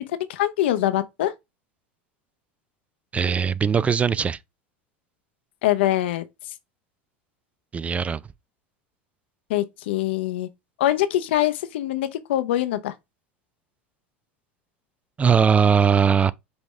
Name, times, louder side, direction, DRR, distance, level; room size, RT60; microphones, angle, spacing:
voice 1, 0.1-1.3 5.6-6.2 9.5-10.5 10.8-12.9, left 13 dB, 70° left, 0.7 m, -23 dB
voice 2, 3.1-4.4 7.7-8.2 15.2-16.3, right 6 dB, 20° right, 0.3 m, -20 dB
5.5 x 3.0 x 3.2 m
hypercardioid pair, 80°, 6 cm